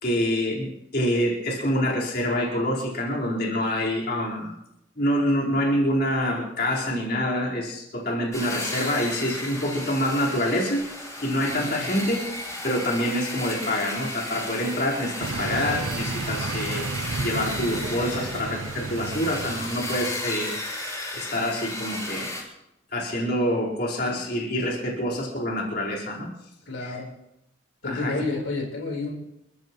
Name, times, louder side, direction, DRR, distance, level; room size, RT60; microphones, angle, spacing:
voice 1, 0.0-4.5 5.0-10.9 11.2-12.3 12.6-16.9 17.2-20.6 21.1-22.4 22.9-26.3 26.8-27.0 27.8-28.1, equal, 50° left, -4 dB, 4.6 m, -26 dB
sound 1, 8.3-22.4, left 1 dB, 15° left, 8.0 m, -34 dB
voice 2, 11.4-11.9 24.0-24.2 26.7-27.1 27.8-29.1, left 3 dB, 85° left, -1 dB, 4.4 m, -31 dB
sound 2, 15.2-20.2, right 3 dB, 85° right, 0.8 m, -32 dB
29.0 x 15.0 x 3.2 m, 0.84 s
head